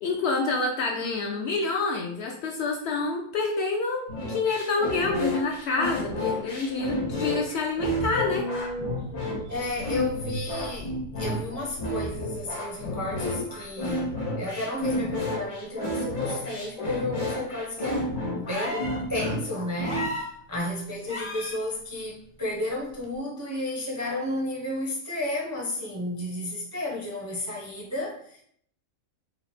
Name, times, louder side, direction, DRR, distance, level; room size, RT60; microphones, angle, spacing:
voice 1, 0.0-8.5, left 3 dB, 65° left, 1 dB, 0.7 m, -27 dB
sound 1, 4.1-20.0, left 1 dB, 90° left, 1.5 m, -31 dB
sound 2, 5.5-15.4 15.7-15.8, right 1 dB, 75° right, 1.1 m, -43 dB
voice 2, 9.5-28.4, left 1 dB, 20° right, -3 dB, 0.4 m, -32 dB
sound 3, 18.5-19.0 19.8-20.3 21.1-21.6 23.0-23.1, left 2 dB, 30° left, 0.6 m, -33 dB
3.9 x 2.1 x 4.2 m, 0.64 s
omnidirectional pair, 1.4 m